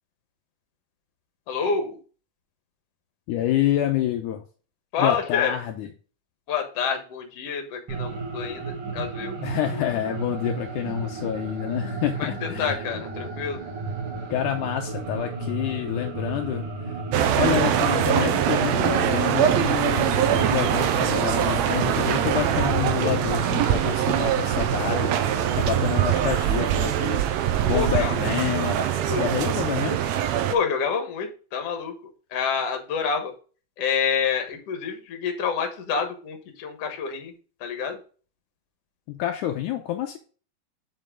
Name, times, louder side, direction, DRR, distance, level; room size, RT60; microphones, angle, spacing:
voice 1, 1.5-2.0 4.9-5.5 6.5-9.4 12.2-13.6 27.6-28.1 29.0-29.2 30.5-31.9 32.3-33.3 33.8-37.3 37.6-38.0, left 6 dB, 55° left, 5 dB, 2.1 m, -28 dB
voice 2, 3.3-4.4 5.0-5.9 9.4-13.0 14.3-16.6 17.4-25.1 25.5-28.8 29.2-30.0 39.1-40.2, left 12 dB, 75° left, 3 dB, 2.1 m, -28 dB
sound 1, 7.9-25.9, right 3 dB, 50° right, 2.5 m, -33 dB
sound 2, 17.1-30.5, right 10 dB, 75° right, 1.6 m, -23 dB
7.6 x 5.5 x 3.7 m, 0.38 s
omnidirectional pair, 3.7 m